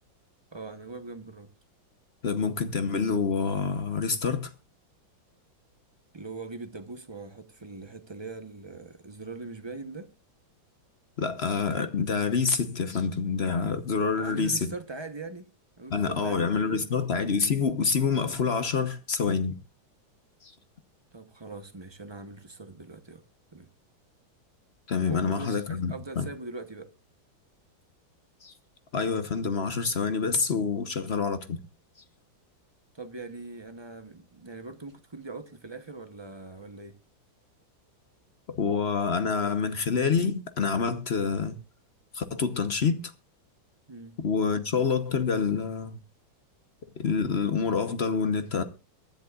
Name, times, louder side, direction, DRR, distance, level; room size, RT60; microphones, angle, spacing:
voice 1, 0.5-1.5 6.1-10.1 14.1-15.5 15.8-17.1 21.1-23.2 23.5-23.7 25.1-26.9 32.9-37.0 43.9-44.2, right 3 dB, 30° right, 0.5 m, -41 dB
voice 2, 2.2-4.5 11.2-14.7 15.9-19.6 20.4-20.5 24.9-26.3 28.4-28.5 28.9-31.6 38.5-41.6 42.1-43.0 44.2-46.0 47.0-48.6, left 5 dB, 45° left, 0.9 m, -27 dB
23.5 x 10.5 x 2.4 m
omnidirectional pair, 2.1 m